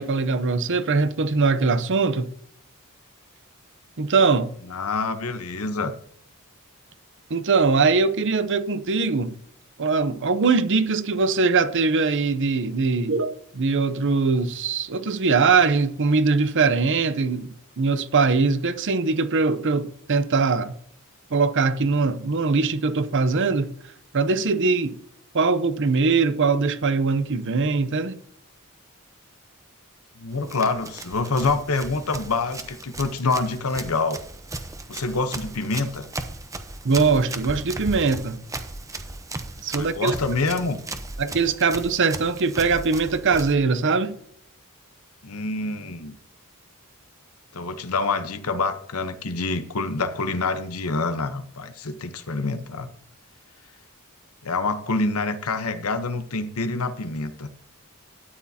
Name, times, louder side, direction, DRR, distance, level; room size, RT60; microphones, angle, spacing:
voice 1, 0.0-2.3 4.0-4.5 7.3-9.4 9.8-20.7 21.3-23.7 24.1-25.0 25.3-28.2 36.8-38.4 39.6-40.1 41.2-44.2, right 4 dB, 60° right, 0.7 m, -22 dB
voice 2, 4.7-5.9 30.2-34.2 34.9-36.0 39.7-40.8 45.2-46.2 47.5-52.9 54.4-57.5, left 3 dB, 85° left, 1.0 m, -26 dB
Run, 30.3-43.5, right 2 dB, 15° right, 0.7 m, -36 dB
12.5 x 9.6 x 2.8 m
head